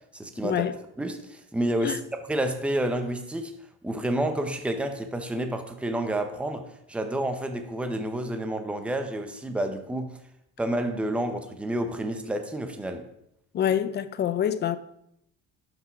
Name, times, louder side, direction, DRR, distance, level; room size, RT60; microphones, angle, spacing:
voice 1, 0.1-0.6 1.0-3.5 3.8-10.2 10.6-13.1, right 1 dB, 5° right, 0.8 m, -29 dB
voice 2, 13.5-14.8, left 10 dB, 35° left, 0.6 m, -26 dB
12.0 x 6.1 x 4.5 m
cardioid pair, 150°, 31 cm